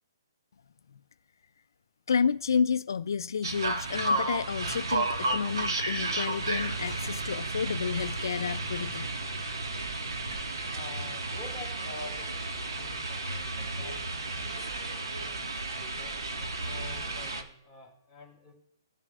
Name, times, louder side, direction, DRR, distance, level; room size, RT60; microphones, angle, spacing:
voice 1, 2.1-9.1, left 6 dB, 60° left, 0.3 m, -30 dB
sound 1, 3.4-17.4, right 2 dB, 85° right, 1.6 m, -33 dB
voice 2, 10.7-16.2 16.6-18.5, left 3 dB, 5° right, 2.5 m, -48 dB
17.0 x 7.3 x 2.4 m
hypercardioid pair, 175°, 2 cm